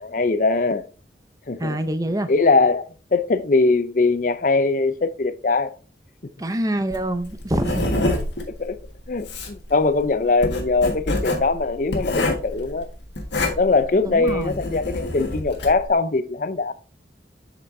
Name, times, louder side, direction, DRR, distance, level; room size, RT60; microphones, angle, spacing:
voice 1, 0.0-0.9 1.5-1.8 2.3-5.7 8.6-8.8 9.1-12.9 13.6-16.7, left 3 dB, 50° left, 0.5 m, -21 dB
voice 2, 1.6-2.3 6.4-8.0 14.1-14.6, right 1 dB, 20° right, 0.6 m, -25 dB
Writing, 6.9-15.9, left 2 dB, 85° left, 1.7 m, -27 dB
7.8 x 5.9 x 2.6 m
head